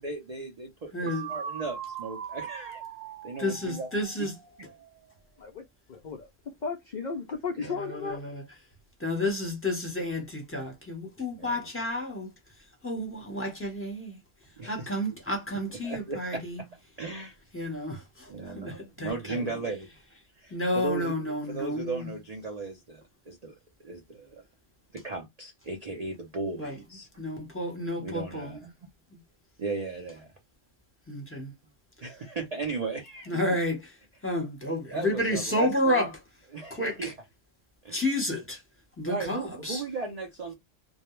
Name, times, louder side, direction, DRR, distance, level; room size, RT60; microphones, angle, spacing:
voice 1, 0.0-2.8 3.2-3.9 4.1-4.3 4.6-4.7 7.6-7.7 11.4-11.7 14.6-14.9 15.8-17.4 18.3-20.0 20.3-23.5 23.8-24.4 24.9-27.1 28.0-28.7 29.6-30.3 32.0-33.6 34.9-36.1 36.5-37.1 37.8-38.0 39.1-40.5, right 3 dB, 60° right, 0.4 m, -36 dB
voice 2, 0.9-1.3 3.4-4.3 7.6-8.4 9.0-12.3 12.8-14.2 14.7-16.6 17.5-18.3 18.6-19.4 20.5-22.1 26.6-26.7 27.2-28.6 31.1-31.5 33.3-33.8 34.2-36.1 36.7-37.1 37.9-38.6 39.0-39.8, left 1 dB, 10° left, 0.7 m, -30 dB
sound 1, 1.1-4.9, right 7 dB, 85° right, 1.0 m, -40 dB
voice 3, 5.9-6.3 6.6-8.2, left 5 dB, 65° left, 0.4 m, -34 dB
2.3 x 2.0 x 3.0 m
omnidirectional pair, 1.3 m